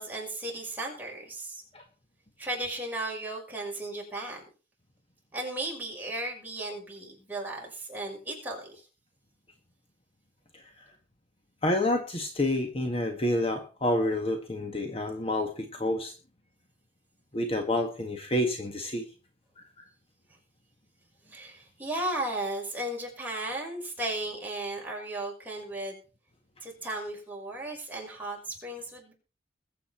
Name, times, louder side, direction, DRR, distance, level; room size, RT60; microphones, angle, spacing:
voice 1, 0.0-1.6 2.4-4.4 5.3-8.7 21.3-26.0 26.6-29.1, right 1 dB, 10° right, -2 dB, 5.9 m, -35 dB
voice 2, 11.6-16.1 17.3-19.0, left 1 dB, 30° left, 5 dB, 1.5 m, -28 dB
21.5 x 8.3 x 4.4 m, 0.35 s
head